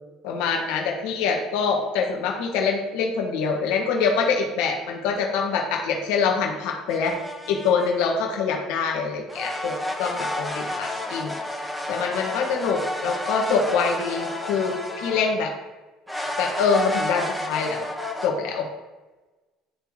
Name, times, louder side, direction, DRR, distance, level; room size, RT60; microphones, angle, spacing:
voice 1, 0.2-7.2 7.5-11.3 11.9-15.5 16.4-17.8 18.2-18.7, left 5 dB, 75° left, 1 dB, 1.2 m, -25 dB
sound 1, 6.9-8.1 9.3-15.4 16.1-18.3, left 1 dB, ahead, 1.0 m, -31 dB
9.8 x 3.4 x 3.2 m, 1.2 s
hypercardioid pair, 70°, 0 cm